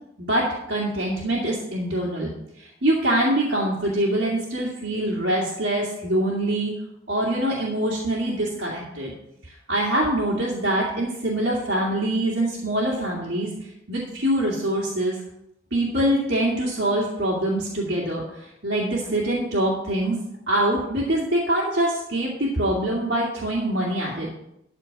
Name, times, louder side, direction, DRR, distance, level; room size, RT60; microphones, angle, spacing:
voice 1, 0.2-2.3 2.6-6.7 7.1-9.1 9.4-13.5 13.9-15.2 15.7-20.2 20.5-24.3, right 1 dB, 65° right, -5 dB, 2.3 m, -24 dB
13.0 x 4.5 x 7.2 m, 0.83 s
head